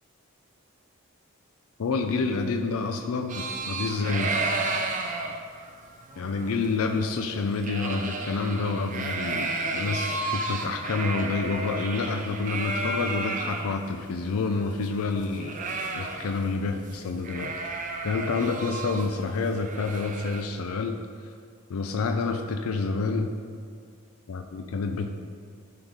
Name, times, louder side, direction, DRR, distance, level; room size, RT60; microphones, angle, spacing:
voice 1, 1.8-4.3 6.2-15.6 15.9-17.5 18.0-21.0 21.7-23.3 24.3-25.1, left 4 dB, 85° left, 5 dB, 0.5 m, -28 dB
sound 1, 3.3-13.7 14.1-14.2 14.4-16.6 16.8-17.0 17.2-20.4, right 3 dB, 35° right, 0.6 m, -32 dB
11.0 x 3.9 x 4.7 m, 2.1 s
head